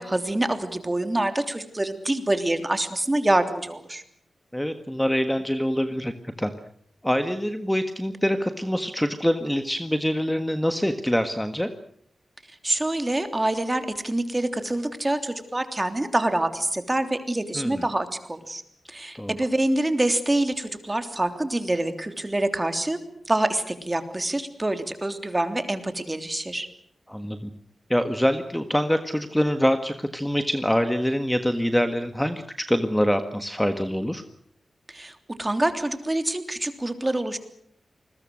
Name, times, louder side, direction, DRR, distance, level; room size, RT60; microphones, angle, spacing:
voice 1, 0.0-4.0 12.6-18.6 18.9-23.0 23.3-26.7 34.9-37.4, right 1 dB, 20° right, 8 dB, 3.3 m, -26 dB
voice 2, 4.5-6.5 7.0-11.7 17.5-17.9 19.1-19.3 27.1-27.5 27.9-34.2, equal, 5° left, 8 dB, 1.5 m, -25 dB
28.5 x 21.5 x 6.4 m, 0.65 s
wide cardioid pair, 80°, 0 cm